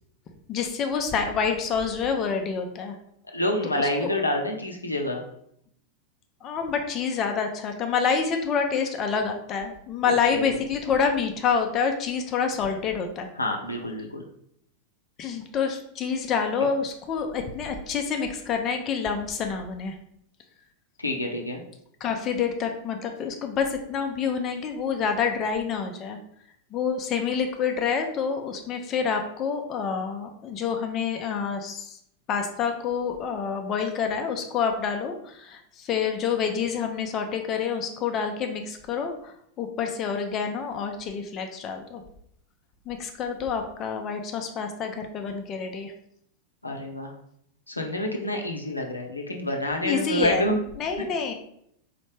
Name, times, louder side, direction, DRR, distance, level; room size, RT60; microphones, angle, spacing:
voice 1, 0.5-3.0 3.7-4.1 6.4-13.3 15.2-20.0 22.0-26.2 26.7-32.0 32.3-42.0 42.9-45.9 49.8-51.3, left 6 dB, 30° left, 4 dB, 0.5 m, -27 dB
voice 2, 3.3-5.2 10.1-10.5 13.4-14.2 21.0-21.6 46.6-47.1 47.7-50.6 51.0-51.1, left 1 dB, 85° left, 2 dB, 0.6 m, -28 dB
4.1 x 3.1 x 3.2 m, 0.71 s
figure-of-eight pair, 90°, 0 cm